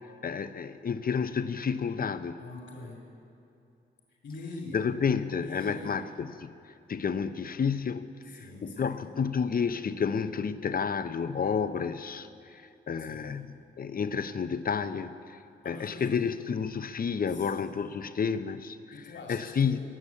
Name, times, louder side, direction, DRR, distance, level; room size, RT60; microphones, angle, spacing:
voice 1, 0.2-2.4 4.7-6.5 6.9-12.6 12.9-15.1 15.7-18.8 19.3-19.8, left 6 dB, 50° left, 12 dB, 0.7 m, -30 dB
voice 2, 2.4-3.1 4.1-6.0 8.3-9.0 13.0-13.5 15.6-16.2 17.3-17.5 18.9-19.8, left 2 dB, 80° left, -2 dB, 2.6 m, -44 dB
19.0 x 6.8 x 8.4 m, 2.7 s
cardioid pair, 75°, 19 cm